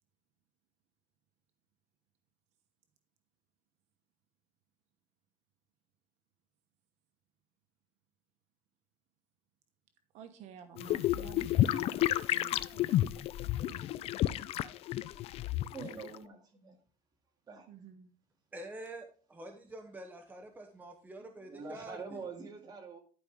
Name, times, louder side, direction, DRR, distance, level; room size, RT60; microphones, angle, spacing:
voice 1, 10.1-13.1 13.6-14.1 17.7-18.1, right 7 dB, 80° right, 7 dB, 1.1 m, -52 dB
sound 1, 10.8-16.2, left 13 dB, 60° left, 0.4 m, -31 dB
voice 2, 15.7-16.8 17.5-17.7 21.2-23.0, right 5 dB, 35° right, 2 dB, 2.3 m, -45 dB
voice 3, 18.5-22.2, right 1 dB, 15° right, 4 dB, 1.0 m, -47 dB
11.5 x 5.3 x 3.7 m, 0.41 s
cardioid pair, 140°, 11 cm